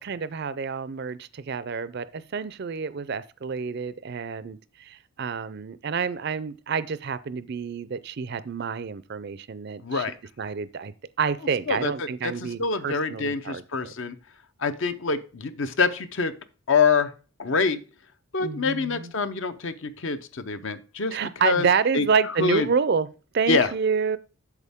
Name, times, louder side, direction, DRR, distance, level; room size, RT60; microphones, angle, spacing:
voice 1, 0.0-10.1 10.4-13.9 18.4-19.1 21.1-23.1 23.3-24.2, right 5 dB, 50° right, 0.4 m, -28 dB
voice 2, 9.8-10.1 11.7-11.9 12.2-12.3 12.6-14.1 14.6-16.3 16.7-17.1 17.4-17.8 18.3-21.7 21.9-22.0 22.4-22.6 23.5-23.7, left 4 dB, 55° left, 0.7 m, -25 dB
8.3 x 7.1 x 3.5 m
head